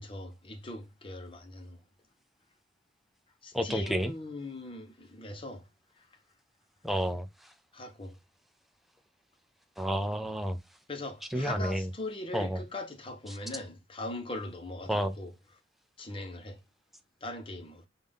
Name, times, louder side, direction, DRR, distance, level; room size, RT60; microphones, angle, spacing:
voice 1, 0.0-1.8 3.4-5.7 6.0-6.1 7.7-8.2 10.9-15.3 16.0-16.6 17.2-17.9, left 2 dB, 30° left, 1.1 m, -40 dB
voice 2, 3.5-4.1 6.8-7.3 9.8-10.6 11.3-11.9 12.3-12.6 14.9-15.2, equal, ahead, 0.6 m, -30 dB
5.5 x 2.7 x 3.5 m
head